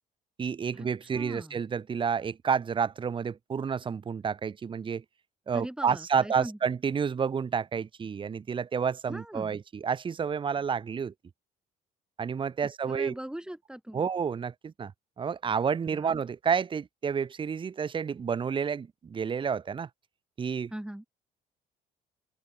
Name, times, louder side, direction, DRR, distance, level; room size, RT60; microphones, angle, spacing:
voice 1, 0.4-5.0 5.5-11.1 12.2-13.1 13.9-14.9 15.2-19.9 20.4-20.7, right 6 dB, 30° right, 0.9 m, -30 dB
voice 2, 1.1-1.6 5.5-6.6 9.1-9.6 12.9-14.1 15.8-16.2 20.7-21.1, right 1 dB, 5° right, 2.4 m, -40 dB
open air
cardioid pair, 110°, 17 cm